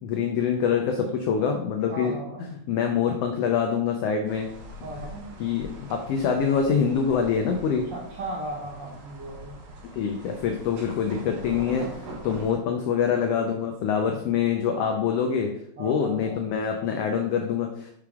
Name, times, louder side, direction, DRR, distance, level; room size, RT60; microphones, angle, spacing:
voice 1, 0.0-2.1 2.4-4.5 5.4-7.9 9.9-15.5 15.8-17.9, left 7 dB, 80° left, 3 dB, 1.4 m, -25 dB
voice 2, 1.9-2.5 4.8-5.2 7.9-9.6 12.2-12.5 15.8-16.4, right 2 dB, 85° right, -2 dB, 1.0 m, -37 dB
sound 1, 4.3-12.5, right 1 dB, 65° right, 2.3 m, -42 dB
5.9 x 4.9 x 3.6 m, 0.71 s
omnidirectional pair, 3.4 m